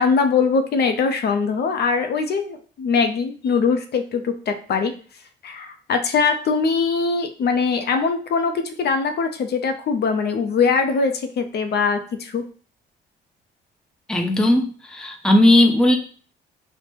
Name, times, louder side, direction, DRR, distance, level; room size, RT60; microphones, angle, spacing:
voice 1, 0.0-4.9 5.4-12.4, left 5 dB, 55° left, 7 dB, 0.5 m, -22 dB
voice 2, 14.1-16.0, left 1 dB, 5° left, 3 dB, 0.5 m, -17 dB
3.0 x 2.0 x 3.2 m, 0.41 s
cardioid pair, 90°, 20 cm